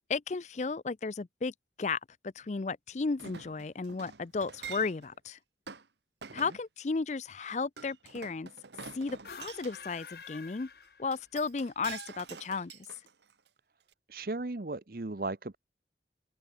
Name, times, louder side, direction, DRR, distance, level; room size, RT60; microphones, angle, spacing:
voice 1, 0.1-2.0 2.2-5.4 6.3-8.5 8.9-10.7 11.0-12.8, left 4 dB, 40° left, 0.5 m, -34 dB
Chink clink, 3.2-5.1 5.7-5.9 6.2-6.6 7.8-9.8 11.1-13.5 13.9-14.0, right 6 dB, 80° right, 1.4 m, -46 dB
sound 1, 9.1-11.5, left 5 dB, 60° left, 1.2 m, -49 dB
voice 2, 14.1-15.6, right 2 dB, 55° right, 0.9 m, -36 dB
open air
head